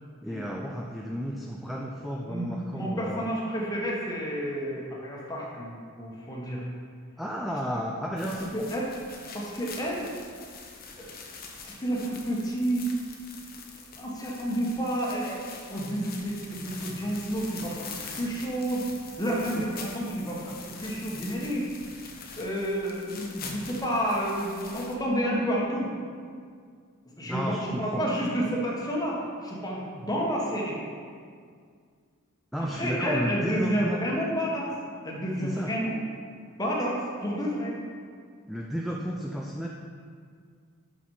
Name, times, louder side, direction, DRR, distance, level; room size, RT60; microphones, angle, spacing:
voice 1, 0.2-3.3 7.2-8.7 19.6-19.7 27.3-28.1 32.5-34.1 35.4-35.7 38.5-39.7, equal, ahead, -2 dB, 0.4 m, -32 dB
voice 2, 2.3-6.6 8.3-8.9 9.3-10.1 11.0-11.1 11.6-12.9 14.0-18.8 19.2-21.7 22.4-25.9 27.2-30.8 32.7-34.7 35.0-36.0 36.6-37.8, equal, 20° left, -3 dB, 1.3 m, -30 dB
sound 1, 8.2-25.0, left 4 dB, 45° left, 0.9 m, -44 dB
6.0 x 6.0 x 5.5 m, 2.1 s
head